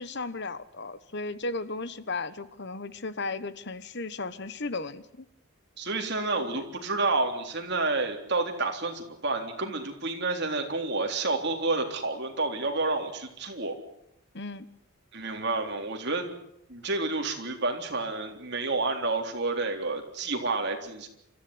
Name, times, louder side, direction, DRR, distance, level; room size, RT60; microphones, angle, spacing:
voice 1, 0.0-5.2 6.5-6.6 14.3-14.7, left 3 dB, 50° left, 14 dB, 1.3 m, -35 dB
voice 2, 5.8-13.8 15.1-16.3 16.7-21.1, right 3 dB, 50° right, 3 dB, 3.7 m, -29 dB
28.0 x 14.5 x 9.7 m, 0.79 s
head